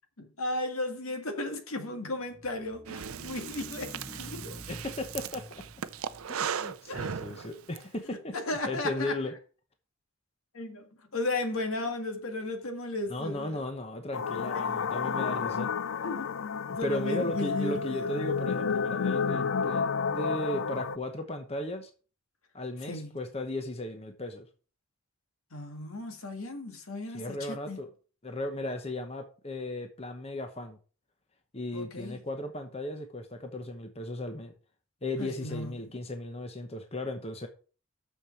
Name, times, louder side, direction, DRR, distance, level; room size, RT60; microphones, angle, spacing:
voice 1, 0.2-4.6 6.9-7.1 8.3-9.1 10.5-13.6 14.5-14.8 16.0-18.1 22.8-23.1 25.5-27.8 31.7-32.2 35.2-35.9, left 2 dB, 80° left, 1.9 m, -35 dB
sound 1, 2.2-6.7, left 1 dB, 15° right, 2.0 m, -47 dB
Breathing, 2.9-7.8, right 7 dB, 80° right, 0.6 m, -37 dB
voice 2, 4.7-5.6 6.3-8.3 8.6-9.3 13.1-15.7 16.8-21.9 22.5-24.5 27.1-27.9 28.2-30.8 31.5-34.6 35.0-37.5, left 1 dB, 30° left, 1.0 m, -36 dB
sound 2, 14.1-21.0, left 5 dB, 60° left, 0.4 m, -31 dB
6.6 x 6.3 x 6.9 m
head